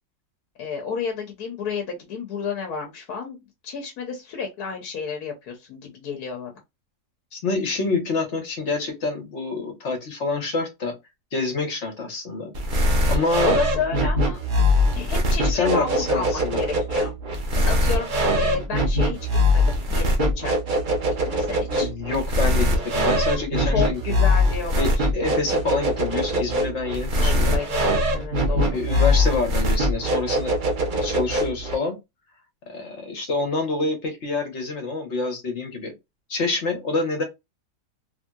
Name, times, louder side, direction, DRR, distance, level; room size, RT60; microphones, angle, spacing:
voice 1, 0.6-3.4 3.6-6.5 13.4-14.4 14.9-17.1 17.6-19.2 19.5-20.6 21.2-21.9 23.6-25.1 27.1-28.8, left 5 dB, 70° left, 1.3 m, -31 dB
voice 2, 7.3-10.9 11.3-12.5 13.1-13.6 15.4-16.6 21.7-24.0 24.8-27.6 28.5-30.6 30.9-32.0 32.7-35.9 36.3-37.2, left 3 dB, 50° left, 1.2 m, -27 dB
sound 1, 12.5-31.7, left 1 dB, 55° right, 0.5 m, -22 dB
3.1 x 2.7 x 2.2 m
omnidirectional pair, 1.7 m